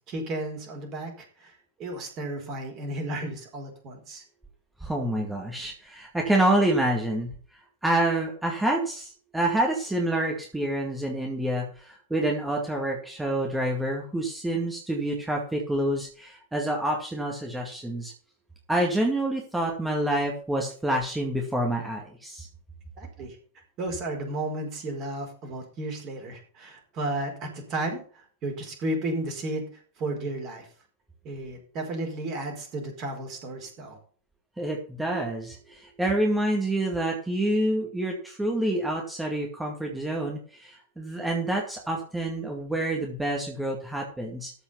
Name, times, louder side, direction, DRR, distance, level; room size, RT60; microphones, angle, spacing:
voice 1, 0.1-1.5 1.8-4.2 23.0-23.4 23.8-29.7 30.0-30.7 31.2-34.0, right 1 dB, 35° right, 3 dB, 4.6 m, -33 dB
voice 2, 4.8-7.3 7.8-18.1 18.7-22.5 34.6-44.5, right 1 dB, 5° right, 0 dB, 2.2 m, -27 dB
13.5 x 5.6 x 5.8 m, 0.42 s
figure-of-eight pair, 90°, 0 cm